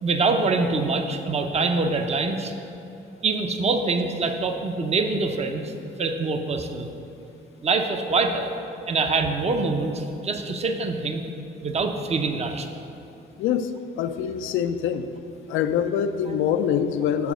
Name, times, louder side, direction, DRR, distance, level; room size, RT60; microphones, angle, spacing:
voice 1, 0.0-2.5 3.2-5.7 6.0-6.9 7.6-8.5 8.9-11.2 11.6-12.7 16.3-16.4, right 3 dB, 35° right, 6 dB, 0.6 m, -24 dB
voice 2, 13.4-13.7 14.0-15.1 15.5-17.3, left 8 dB, 85° left, 10 dB, 0.4 m, -24 dB
7.0 x 4.6 x 6.1 m, 2.9 s
cardioid pair, 90°, 20 cm